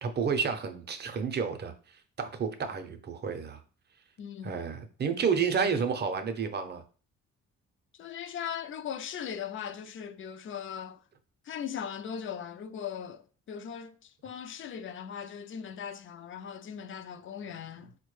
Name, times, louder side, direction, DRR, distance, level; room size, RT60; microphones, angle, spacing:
voice 1, 0.0-3.6 4.4-6.8, right 6 dB, 35° right, 0.6 m, -30 dB
voice 2, 4.2-4.6 8.0-11.0 11.4-18.0, left 8 dB, 45° left, 0.4 m, -39 dB
4.3 x 2.2 x 3.1 m
cardioid pair, 90°, 30 cm